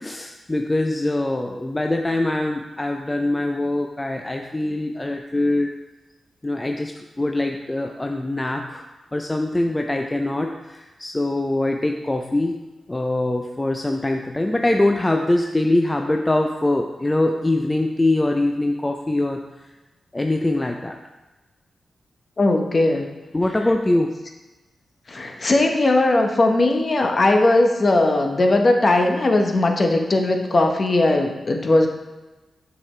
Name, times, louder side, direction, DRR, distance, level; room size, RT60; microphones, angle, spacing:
voice 1, 0.0-5.7 6.4-8.8 9.1-12.6 12.9-19.4 20.1-21.0 23.3-24.2, left 1 dB, 20° left, 3 dB, 0.5 m, -23 dB
voice 2, 22.4-23.1 25.1-31.9, left 2 dB, 45° left, 4 dB, 0.9 m, -18 dB
6.9 x 4.9 x 3.3 m, 1.1 s
cardioid pair, 55°, 0 cm